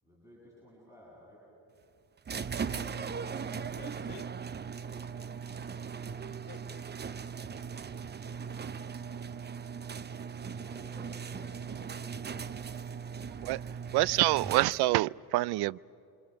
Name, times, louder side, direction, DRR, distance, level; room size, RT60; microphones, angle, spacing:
voice 1, 0.0-1.4 10.4-12.3, equal, 5° right, 7.8 m, -55 dB
sound 1, 2.3-15.0, right 6 dB, 25° right, 0.7 m, -39 dB
voice 2, 2.8-4.3 6.2-6.8, left 12 dB, 60° left, 1.2 m, -53 dB
voice 3, 13.9-15.8, right 18 dB, 65° right, 0.5 m, -26 dB
28.5 x 25.0 x 6.8 m
cardioid pair, 95°, 42 cm